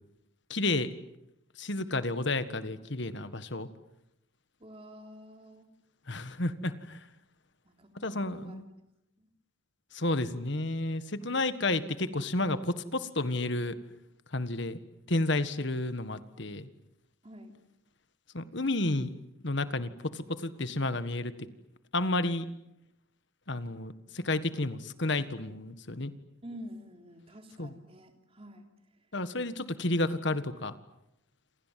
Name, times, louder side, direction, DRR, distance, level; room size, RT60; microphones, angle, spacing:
voice 1, 0.5-0.9 1.6-3.7 6.1-7.1 7.9-8.6 9.9-13.8 14.3-14.8 15.1-16.7 18.3-19.1 19.4-21.3 21.9-22.4 23.5-26.1 27.6-27.7 29.1-30.7, left 2 dB, 55° left, 12 dB, 1.6 m, -31 dB
voice 2, 4.6-5.7 7.6-8.6 9.2-9.3 17.2-17.5 26.4-28.7, equal, 30° right, 5 dB, 3.4 m, -48 dB
28.5 x 27.0 x 7.6 m, 0.83 s
head